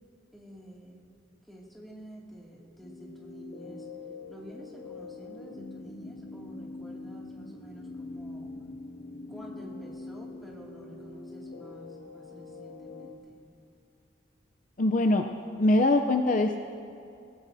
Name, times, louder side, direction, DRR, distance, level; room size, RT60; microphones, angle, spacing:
voice 1, 0.3-1.0 1.5-3.9 4.3-8.5 9.3-13.4, equal, ahead, -5 dB, 2.3 m, -49 dB
sound 1, 2.8-13.2, left 3 dB, 85° left, 2.1 m, -43 dB
voice 2, 14.8-15.3 15.6-16.6, left 2 dB, 40° left, 4 dB, 0.5 m, -23 dB
27.0 x 16.5 x 2.7 m, 2.5 s
head